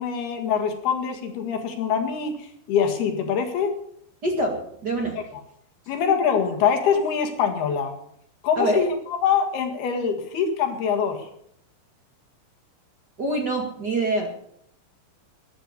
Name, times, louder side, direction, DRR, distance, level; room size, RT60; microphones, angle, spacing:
voice 1, 0.0-3.8 5.9-7.9 8.4-8.9 9.2-11.3, left 7 dB, 85° left, 5 dB, 4.0 m, -24 dB
voice 2, 4.2-5.2 8.6-8.8 13.2-14.3, right 2 dB, 35° right, 2 dB, 1.8 m, -25 dB
14.0 x 11.5 x 6.7 m, 0.69 s
omnidirectional pair, 4.4 m